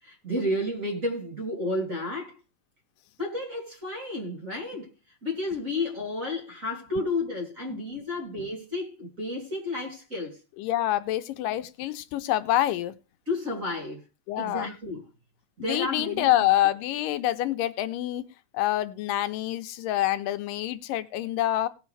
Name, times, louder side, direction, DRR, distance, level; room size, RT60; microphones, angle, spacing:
voice 1, 0.0-2.4 3.2-10.4 13.3-14.0 14.4-15.0 15.6-16.5, left 1 dB, 25° right, 3.2 m, -32 dB
voice 2, 10.6-13.0 14.3-14.7 15.6-18.3 18.5-21.7, left 14 dB, 85° left, 2.3 m, -26 dB
18.0 x 7.2 x 3.3 m
omnidirectional pair, 3.8 m